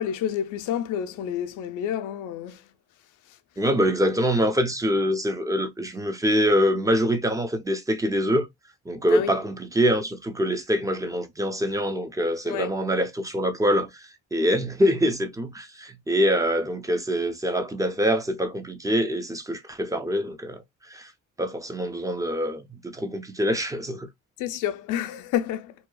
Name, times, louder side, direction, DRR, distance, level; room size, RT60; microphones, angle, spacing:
voice 1, 0.0-2.6 9.1-9.3 12.5-12.7 24.4-25.7, left 10 dB, 85° left, 0.5 m, -29 dB
voice 2, 3.6-8.5 8.9-21.1 21.4-24.1, equal, 10° right, 0.6 m, -25 dB
2.8 x 2.3 x 2.2 m
cardioid pair, 90°, 30 cm